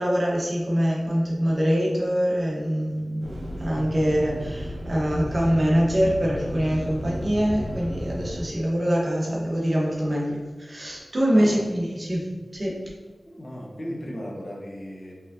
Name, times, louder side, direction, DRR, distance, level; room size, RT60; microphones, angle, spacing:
voice 1, 0.0-3.3 3.6-12.7, equal, 40° right, -4 dB, 1.2 m, -24 dB
sound 1, 3.2-8.4, equal, 70° right, 1.3 m, -33 dB
voice 2, 13.2-15.1, equal, 40° left, -2 dB, 1.0 m, -36 dB
4.9 x 3.6 x 2.8 m, 1.3 s
cardioid pair, 50°, 0 cm